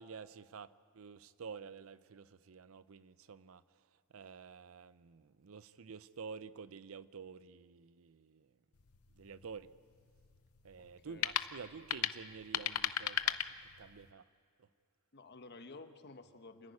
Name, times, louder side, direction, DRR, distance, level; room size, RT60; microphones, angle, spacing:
voice 1, 0.0-3.6 4.1-8.5 9.1-9.7 10.6-14.2 14.6-14.7, right 5 dB, 70° right, 0.6 m, -50 dB
sound 1, 8.7-14.1, left 10 dB, 85° left, 0.7 m, -38 dB
voice 2, 10.8-11.3 15.1-16.7, left 3 dB, 50° left, 1.1 m, -53 dB
28.0 x 10.5 x 9.5 m
head